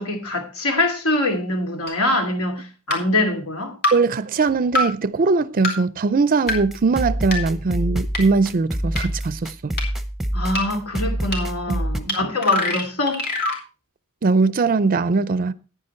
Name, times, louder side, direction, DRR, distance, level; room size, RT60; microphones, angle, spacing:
voice 1, 0.0-3.8 10.3-13.2, left 2 dB, 70° left, 2.8 m, -24 dB
sound 1, 1.9-2.0 2.9-3.0 3.8-3.9 4.7-4.8 5.6-5.7 6.5-6.6 7.3-7.4 8.1-8.2 9.0-9.1 9.8-9.9 10.5-10.6 11.3-11.4 12.1-12.2 12.4-13.6, left 1 dB, 45° left, 3.7 m, -23 dB
voice 2, 3.9-9.7 11.7-11.8 12.1-12.2 14.2-15.5, right 4 dB, 40° right, 0.5 m, -20 dB
sound 2, 6.5-12.0, right 1 dB, ahead, 0.9 m, -27 dB
10.0 x 9.6 x 4.4 m
head